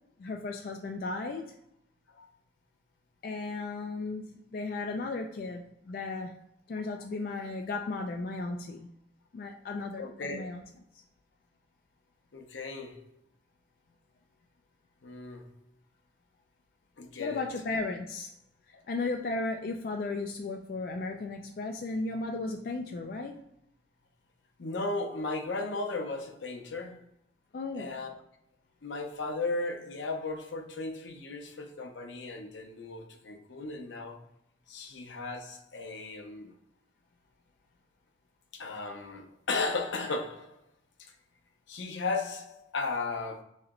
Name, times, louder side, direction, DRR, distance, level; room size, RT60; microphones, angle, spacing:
voice 1, 0.2-1.5 3.2-6.3 6.7-8.9 9.3-10.1 10.3-10.6 17.2-18.3 18.9-23.4 27.5-28.0, left 3 dB, 50° left, 0.3 m, -35 dB
voice 2, 10.0-10.4 12.3-13.1 15.0-15.5 17.0-17.4 24.6-27.0 27.8-28.1 28.8-34.2 34.7-36.5 38.5-40.6 41.0-41.1 41.7-43.4, left 3 dB, 85° left, 0.7 m, -35 dB
3.2 x 2.9 x 3.6 m
head